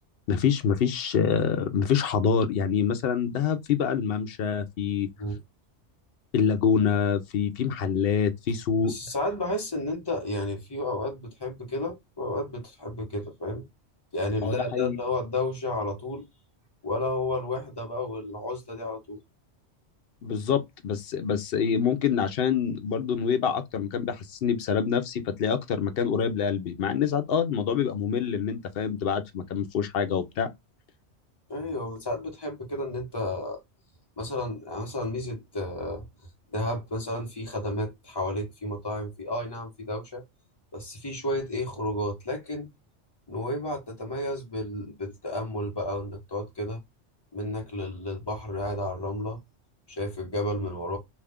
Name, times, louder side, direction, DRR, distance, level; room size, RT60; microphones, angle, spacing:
voice 1, 0.3-5.1 6.3-8.9 14.4-15.0 20.2-30.5, left 7 dB, 60° left, 0.8 m, -26 dB
voice 2, 8.8-13.6 14.1-16.3 16.8-19.2 31.5-33.6 34.2-36.1 36.5-40.2 40.7-42.7 43.3-46.8 47.3-49.4 49.9-51.0, left 1 dB, 25° left, 0.9 m, -32 dB
2.7 x 2.4 x 3.4 m
omnidirectional pair, 1.2 m